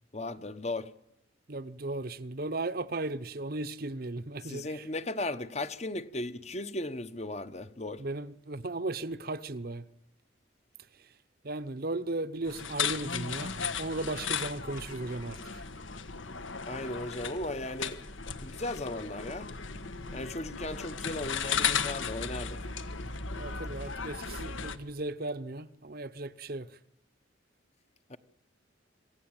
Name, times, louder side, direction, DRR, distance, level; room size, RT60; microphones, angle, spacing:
voice 1, 0.1-0.9 4.4-8.0 16.7-18.0 18.4-19.5 20.1-22.6 28.1-28.2, left 2 dB, 35° left, 1.0 m, -36 dB
voice 2, 1.5-4.9 8.0-9.8 11.0-11.1 11.4-15.6 23.3-26.8, right 2 dB, 50° right, 0.9 m, -36 dB
sound 1, 12.5-24.8, left 6 dB, 80° left, 1.5 m, -35 dB
26.0 x 16.5 x 9.0 m
head